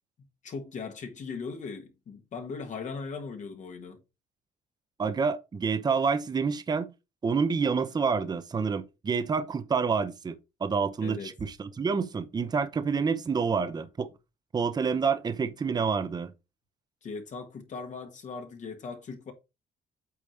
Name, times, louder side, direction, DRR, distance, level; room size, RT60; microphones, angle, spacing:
voice 1, 0.4-4.0 11.0-11.3 17.0-19.3, left 4 dB, 45° left, 1.6 m, -39 dB
voice 2, 5.0-6.9 7.2-14.1 14.5-16.3, right 5 dB, 25° right, 0.7 m, -28 dB
8.5 x 2.9 x 5.1 m
cardioid pair, 110°, 17 cm